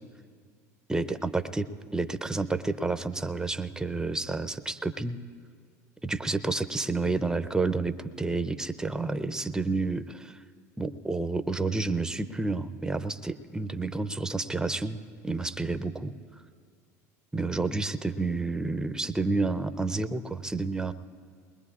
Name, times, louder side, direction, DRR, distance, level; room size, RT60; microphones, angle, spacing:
voice 1, 0.9-1.7 1.9-5.2 6.0-10.4 10.8-15.0 15.2-16.1 17.3-20.9, right 3 dB, 10° right, 12 dB, 0.6 m, -30 dB
21.5 x 20.5 x 2.4 m, 2.1 s
hypercardioid pair, 85°, 9 cm